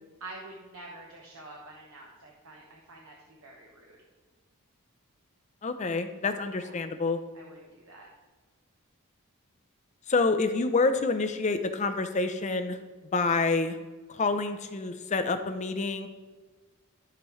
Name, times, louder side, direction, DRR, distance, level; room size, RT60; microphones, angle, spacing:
voice 1, 0.2-4.0 6.6-6.8 7.3-8.1, right 2 dB, 65° right, -1 dB, 1.0 m, -47 dB
voice 2, 5.6-7.2 10.1-12.8 13.1-13.8 14.1-16.1, left 3 dB, 30° left, 8 dB, 0.5 m, -27 dB
13.0 x 5.0 x 3.2 m, 1.4 s
head